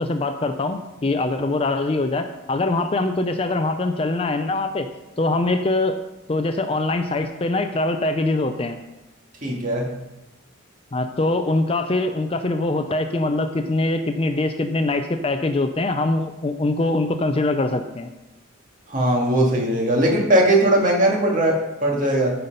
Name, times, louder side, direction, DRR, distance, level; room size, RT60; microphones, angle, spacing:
voice 1, 0.0-4.9 5.2-5.9 6.3-8.8 10.9-18.1, left 2 dB, 25° left, 8 dB, 0.4 m, -23 dB
voice 2, 9.4-9.9 18.9-22.3, right 1 dB, 40° right, -1 dB, 1.8 m, -19 dB
9.3 x 5.7 x 5.3 m, 0.99 s
head